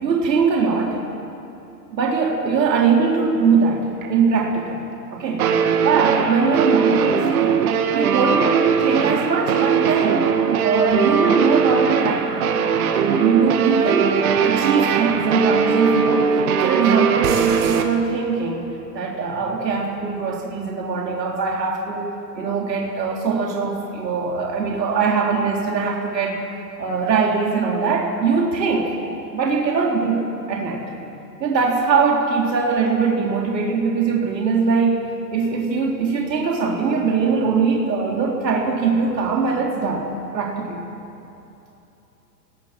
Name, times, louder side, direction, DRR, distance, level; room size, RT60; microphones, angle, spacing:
voice 1, 0.0-1.0 1.9-4.8 5.1-5.5 5.8-7.7 7.9-10.3 10.6-12.5 13.0-18.7 18.9-26.5 26.8-29.0 29.3-30.9 31.4-35.0 35.3-40.8, right 5 dB, 80° right, -1 dB, 3.7 m, -21 dB
sound 1, 4.0-4.1 5.4-17.8, right 6 dB, 55° right, 2.2 m, -20 dB
29.0 x 20.0 x 6.1 m, 2.9 s
hypercardioid pair, 140°, 49 cm